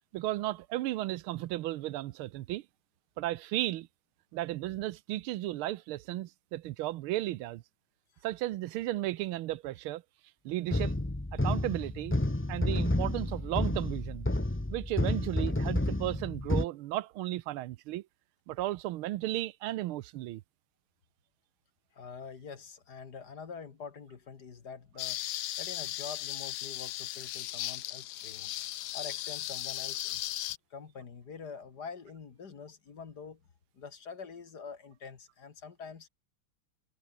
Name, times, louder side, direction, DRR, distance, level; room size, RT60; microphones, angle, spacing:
voice 1, 0.1-2.6 3.2-3.9 4.3-7.6 8.2-10.0 10.4-10.9 11.3-12.2 12.5-14.3 14.7-18.0 18.5-20.4, right 15 dB, 85° right, 1.6 m, -34 dB
sound 1, 10.7-16.6, left 1 dB, 10° left, 0.8 m, -30 dB
voice 2, 21.9-25.2 25.6-28.5 28.9-30.4 30.7-33.4 33.7-36.1, left 5 dB, 50° left, 2.4 m, -45 dB
sound 2, 25.0-30.6, left 14 dB, 75° left, 1.4 m, -37 dB
omnidirectional pair, 2.3 m